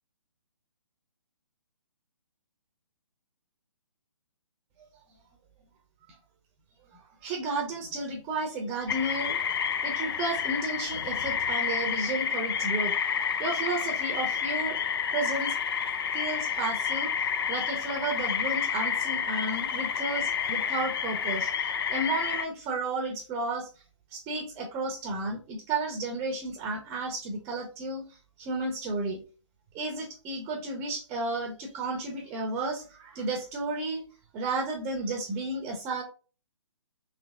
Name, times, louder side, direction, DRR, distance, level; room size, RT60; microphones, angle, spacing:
voice 1, 7.2-9.4 9.8-12.9 13.4-14.8 15.1-15.6 16.1-17.1 17.5-23.7 24.1-28.0 28.4-29.2 29.7-34.1 34.3-36.0, right 2 dB, 15° right, 3 dB, 0.8 m, -32 dB
sound 1, 8.9-22.5, left 7 dB, 50° left, 0.4 m, -30 dB
4.0 x 2.9 x 3.4 m, 0.34 s
figure-of-eight pair, 135°, 16 cm